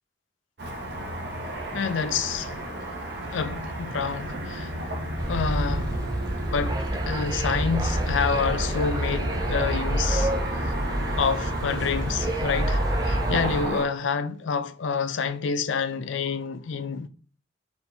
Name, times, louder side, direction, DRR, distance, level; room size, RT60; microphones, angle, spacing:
Car passing by / Traffic noise roadway noise, 0.6-13.9, right 1 dB, 60° right, 0.9 m, -33 dB
voice 1, 1.7-2.5 3.3-4.7 5.3-6.0 6.4-10.3 10.7-10.8 11.2-17.1, left 5 dB, 85° left, 0.4 m, -28 dB
sound 1, 5.2-13.6, right 1 dB, 20° right, 0.4 m, -28 dB
4.3 x 3.5 x 2.7 m
head